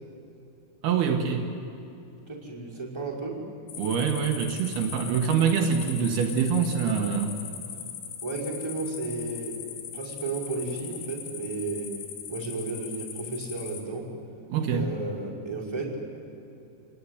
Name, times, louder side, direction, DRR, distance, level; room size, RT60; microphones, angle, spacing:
voice 1, 0.8-1.5 3.8-7.4 14.5-14.9, right 6 dB, 75° right, 3 dB, 3.5 m, -25 dB
voice 2, 2.3-3.4 8.2-9.6 9.9-11.9 12.3-14.1 14.7-16.0, right 3 dB, 5° right, -5 dB, 5.2 m, -33 dB
sound 1, 3.7-13.8, left 8 dB, 90° left, 4.0 m, -40 dB
28.0 x 19.0 x 10.0 m, 2.7 s
omnidirectional pair, 4.5 m